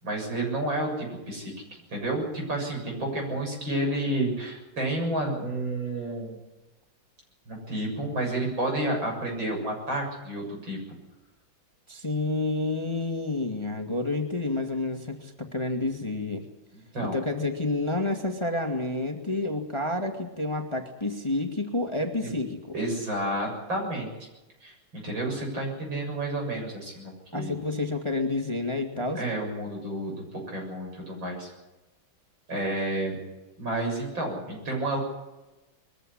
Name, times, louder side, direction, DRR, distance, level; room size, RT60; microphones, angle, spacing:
voice 1, 0.0-6.4 7.5-10.8 16.7-17.2 22.2-22.3 22.7-24.1 24.6-27.6 29.1-31.5 32.5-33.1 33.6-35.0, right 1 dB, 70° right, 1 dB, 7.9 m, -30 dB
voice 2, 11.9-16.4 17.0-22.6 27.3-29.2, left 2 dB, 15° left, 4 dB, 1.8 m, -29 dB
22.0 x 15.0 x 10.0 m, 1.1 s
omnidirectional pair, 2.2 m